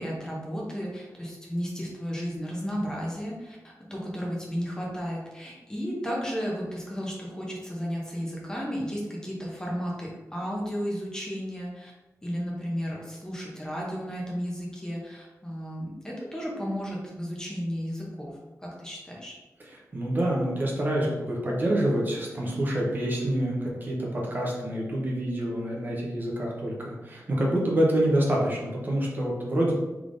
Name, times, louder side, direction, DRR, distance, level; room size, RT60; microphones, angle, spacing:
voice 1, 0.0-11.9 12.2-19.4, equal, 10° left, -3 dB, 0.6 m, -33 dB
voice 2, 19.7-29.7, right 1 dB, 35° right, -3 dB, 0.7 m, -27 dB
3.4 x 3.4 x 2.5 m, 1.1 s
wide cardioid pair, 175°, 6 cm